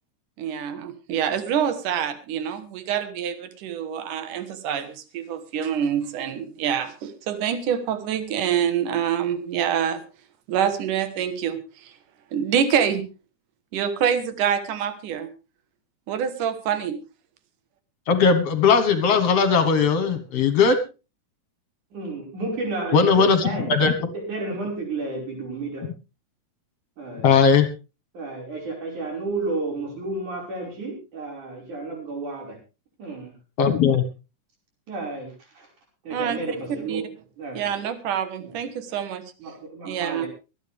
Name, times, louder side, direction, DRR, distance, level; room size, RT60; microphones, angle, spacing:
voice 1, 0.4-10.0 10.5-11.9 12.3-13.0 13.7-15.3 16.1-17.0 36.1-37.0 37.5-39.2 39.9-40.3, right 8 dB, 90° right, 10 dB, 2.8 m, -26 dB
voice 2, 18.1-20.8 22.9-23.9 25.8-25.9 27.2-27.7 33.6-34.0, left 5 dB, 60° left, 9 dB, 2.2 m, -18 dB
voice 3, 21.9-23.7 24.0-25.8 27.0-27.3 28.1-32.6 33.0-33.3 34.9-35.7 36.1-37.0 37.4-37.6 38.4-38.6 39.4-40.3, right 3 dB, 75° right, 0 dB, 6.9 m, -31 dB
24.5 x 9.3 x 3.5 m, 0.31 s
omnidirectional pair, 3.5 m